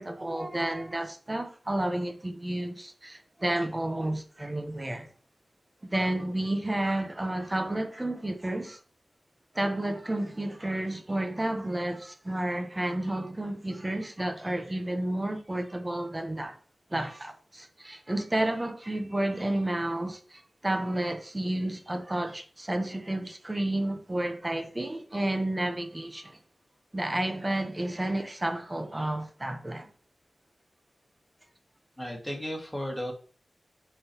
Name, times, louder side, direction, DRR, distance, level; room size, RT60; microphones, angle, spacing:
voice 1, 0.0-5.1 5.8-8.8 9.5-16.6 16.9-26.4 26.9-29.9, right 1 dB, 20° right, 0.9 m, -31 dB
voice 2, 32.0-33.1, equal, ahead, 1.8 m, -34 dB
8.4 x 3.8 x 2.9 m
wide cardioid pair, 105°, 0 cm